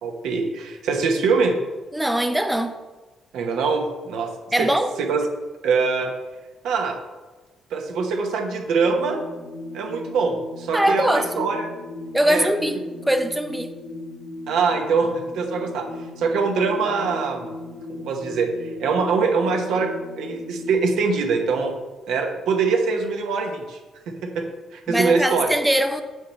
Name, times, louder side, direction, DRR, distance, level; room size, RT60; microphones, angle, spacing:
voice 1, 0.0-1.6 3.3-4.3 4.6-4.7 5.1-5.3 5.6-6.1 6.6-7.0 7.7-9.2 9.7-11.7 12.3-12.5 14.5-15.9 16.2-17.5 18.0-18.5 18.8-19.9 20.2-21.8 22.1-23.8 24.1-24.4 24.7-25.5, right 4 dB, 85° right, 1.0 m, -23 dB
voice 2, 1.9-2.8 4.5-4.9 10.7-11.5 12.1-13.7 24.9-26.0, right 1 dB, 5° right, 0.4 m, -22 dB
sound 1, 8.8-20.7, left 2 dB, 65° left, 1.0 m, -37 dB
6.5 x 4.9 x 4.2 m
cardioid pair, 90°, 0 cm